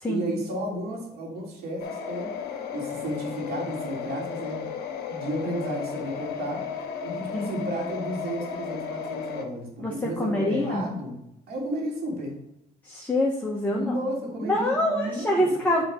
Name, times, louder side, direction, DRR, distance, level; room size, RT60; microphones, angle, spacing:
voice 1, 0.1-2.4 2.7-4.7 5.1-6.7 7.0-11.2 11.5-12.4 13.7-15.6, right 1 dB, 70° right, -1 dB, 2.8 m, -33 dB
sound 1, 1.8-9.4, left 7 dB, 70° left, 1.1 m, -34 dB
voice 2, 9.8-10.9 12.8-14.0 14.4-15.8, left 1 dB, 10° left, -3 dB, 1.3 m, -25 dB
8.2 x 3.8 x 5.3 m, 0.84 s
cardioid pair, 110°, 17 cm